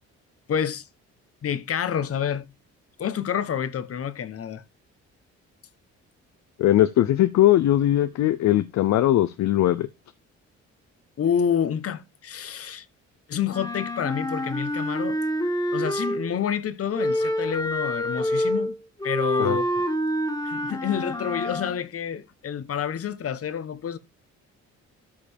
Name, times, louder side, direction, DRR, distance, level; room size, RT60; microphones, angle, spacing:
voice 1, 0.5-0.9 1.4-2.5 3.0-4.6 11.2-12.9 13.3-15.2 15.7-18.8 19.0-19.8 20.4-24.0, left 8 dB, 50° left, 1.1 m, -28 dB
voice 2, 6.6-9.9 19.4-19.6, left 13 dB, 65° left, 0.6 m, -20 dB
Wind instrument woodwind instrument, 13.5-16.4 16.9-21.8, equal, 15° left, 2.0 m, -27 dB
13.0 x 5.0 x 3.4 m
cardioid pair, 90°, 30 cm